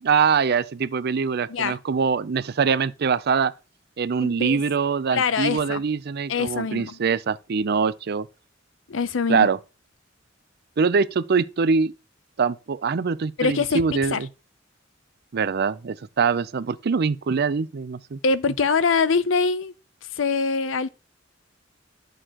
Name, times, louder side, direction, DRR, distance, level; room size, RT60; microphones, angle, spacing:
voice 1, 0.0-3.5 4.0-8.3 9.3-9.6 10.8-11.9 12.4-14.3 15.3-18.2, right 5 dB, 55° right, 0.5 m, -23 dB
voice 2, 4.2-4.6 5.1-5.8 6.3-7.0 8.9-9.5 13.4-13.8 14.1-14.2 18.2-19.7 20.2-20.9, left 5 dB, 85° left, 0.6 m, -23 dB
11.0 x 6.4 x 2.9 m
head